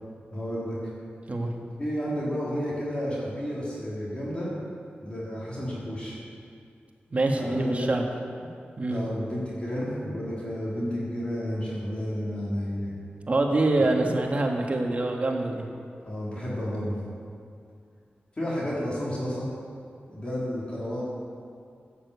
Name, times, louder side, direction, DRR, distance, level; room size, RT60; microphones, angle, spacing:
voice 1, 0.3-0.9 1.8-4.5 5.0-6.2 7.3-7.9 8.9-12.9 14.0-14.1 16.0-17.0 18.4-19.5 20.1-21.0, equal, 30° left, -7 dB, 3.6 m, -31 dB
voice 2, 7.1-8.1 8.4-8.5 8.8-9.0 13.3-15.6, right 2 dB, 40° right, 1 dB, 1.6 m, -25 dB
15.0 x 6.8 x 8.2 m, 2.4 s
wide cardioid pair, 140°, 4 cm